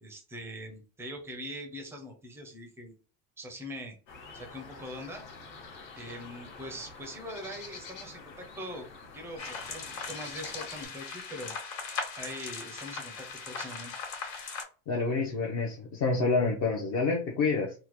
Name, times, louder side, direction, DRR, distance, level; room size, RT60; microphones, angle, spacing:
voice 1, 0.0-2.9 3.4-4.0 4.3-5.2 5.9-8.9 9.1-11.5 12.2-14.0, equal, 5° right, 3 dB, 0.4 m, -42 dB
sound 1, 4.1-10.8, left 4 dB, 70° left, 1.4 m, -47 dB
sound 2, 9.4-14.6, left 5 dB, 85° left, 1.7 m, -39 dB
voice 2, 14.9-17.7, left 3 dB, 40° left, 0 dB, 0.7 m, -28 dB
3.6 x 2.2 x 2.9 m, 0.35 s
cardioid pair, 170°, 40 cm